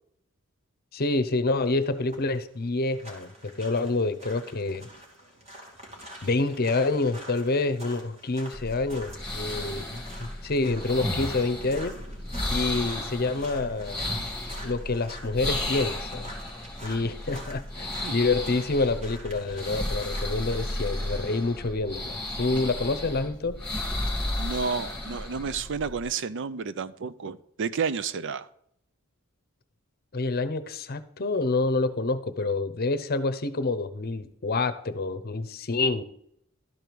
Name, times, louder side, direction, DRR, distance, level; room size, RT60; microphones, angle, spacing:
voice 1, 0.9-4.9 6.2-12.0 12.5-14.0 14.6-16.3 16.8-23.6 30.1-36.0, left 3 dB, 45° left, 11 dB, 0.8 m, -27 dB
sound 1, 1.5-20.2, right 1 dB, 30° right, 2.5 m, -46 dB
sound 2, 8.5-26.1, left 1 dB, 5° left, 2.3 m, -34 dB
voice 2, 24.4-28.5, right 5 dB, 60° right, 15 dB, 0.5 m, -31 dB
12.5 x 4.7 x 5.2 m, 0.71 s
head